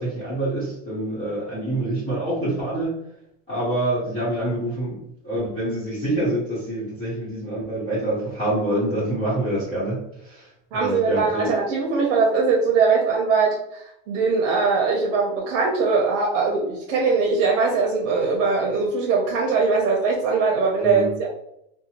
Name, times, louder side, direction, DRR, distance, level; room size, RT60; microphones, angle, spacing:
voice 1, 0.0-2.9 3.5-5.0 5.2-11.5 20.8-21.1, right 1 dB, 15° left, -12 dB, 0.9 m, -26 dB
voice 2, 10.7-21.3, right 4 dB, 85° right, -2 dB, 0.7 m, -21 dB
2.7 x 2.2 x 2.8 m, 0.77 s
supercardioid pair, 175°, 38 cm